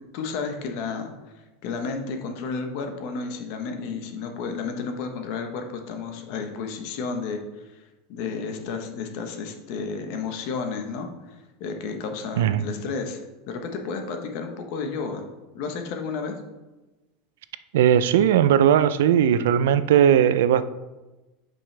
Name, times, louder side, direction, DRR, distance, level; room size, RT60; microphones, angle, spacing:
voice 1, 0.1-1.1 1.6-7.8 8.1-13.2 13.5-15.3 15.5-16.3, left 4 dB, 45° left, 5 dB, 1.0 m, -32 dB
voice 2, 12.4-12.7 17.7-20.6, right 9 dB, 85° right, 14 dB, 0.4 m, -18 dB
9.0 x 5.3 x 3.3 m, 1.1 s
supercardioid pair, 175°, 0 cm